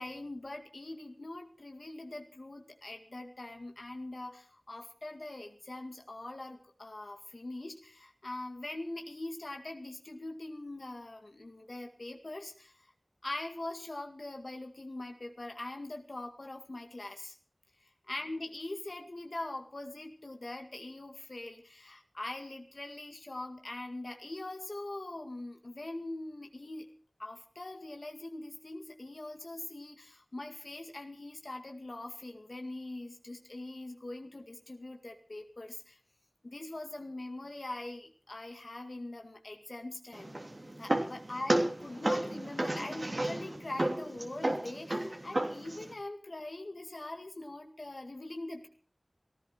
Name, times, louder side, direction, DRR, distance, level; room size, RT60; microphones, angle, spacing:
voice 1, 0.0-12.7 13.2-17.3 18.1-26.9 27.2-36.0 36.4-40.4 40.8-48.7, left 2 dB, 80° left, 4 dB, 2.0 m, -42 dB
sound 1, 40.1-45.9, right 1 dB, 60° right, 3.1 m, -33 dB
17.5 x 16.0 x 4.4 m, 0.44 s
wide cardioid pair, 45°, 0 cm